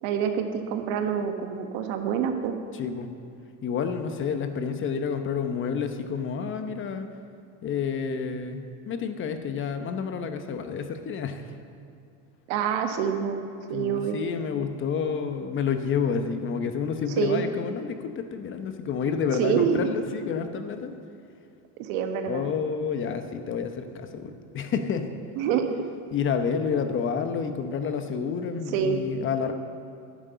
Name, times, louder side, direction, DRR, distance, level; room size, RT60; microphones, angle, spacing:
voice 1, 0.0-2.6 12.5-13.4 13.7-14.2 17.2-17.4 19.4-19.9 21.8-22.5 25.4-25.8 28.7-29.0, right 7 dB, 70° right, 6 dB, 1.4 m, -26 dB
voice 2, 2.7-3.1 3.6-7.1 7.6-11.5 13.7-20.9 22.2-25.1 26.1-29.5, left 6 dB, 35° left, 7 dB, 0.9 m, -29 dB
10.5 x 8.8 x 6.8 m, 2.5 s
supercardioid pair, 125°, 37 cm